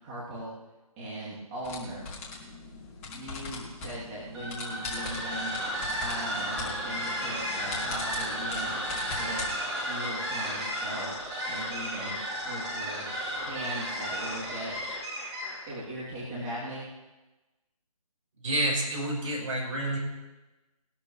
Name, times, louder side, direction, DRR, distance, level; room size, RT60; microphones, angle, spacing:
voice 1, 0.0-0.5 1.0-2.1 3.1-5.5 6.0-8.7 9.2-9.4 9.8-11.2 11.5-12.2 12.4-14.8 15.7-16.9, right 1 dB, 20° right, -9 dB, 3.3 m, -39 dB
sound 1, 1.6-9.5, left 3 dB, 20° left, 2.4 m, -41 dB
sound 2, 4.3-15.7, equal, ahead, 0.3 m, -33 dB
voice 2, 18.4-20.0, right 1 dB, 55° right, -2 dB, 6.1 m, -29 dB
20.0 x 12.5 x 3.4 m, 1.1 s
figure-of-eight pair, 155°, 19 cm